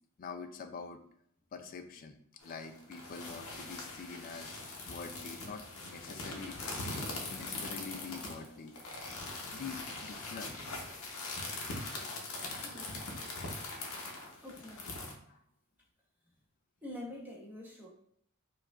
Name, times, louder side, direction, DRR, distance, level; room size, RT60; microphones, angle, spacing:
voice 1, 0.2-1.0 1.5-2.2 2.4-4.5 4.9-6.6 7.3-8.7 9.5-10.6 15.3-15.4, left 5 dB, 40° left, 7 dB, 0.3 m, -45 dB
sound 1, 2.4-15.1, left 2 dB, 85° left, 0.7 m, -42 dB
voice 2, 12.6-13.1 14.4-14.9 16.8-17.9, left 1 dB, 10° right, -4 dB, 0.8 m, -46 dB
4.8 x 2.4 x 2.3 m, 0.68 s
head